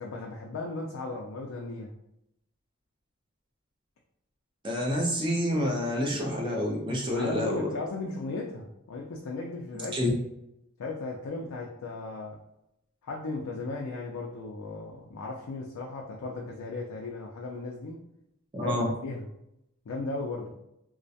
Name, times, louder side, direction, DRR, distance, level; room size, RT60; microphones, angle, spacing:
voice 1, 0.0-1.9 7.0-10.2 10.8-12.4 13.0-18.0 18.6-19.2 19.9-20.5, left 3 dB, 70° left, -1 dB, 0.4 m, -36 dB
voice 2, 4.6-7.7 9.9-10.1 18.5-18.9, left 1 dB, 20° right, -1 dB, 0.4 m, -28 dB
2.3 x 2.1 x 2.6 m, 0.82 s
head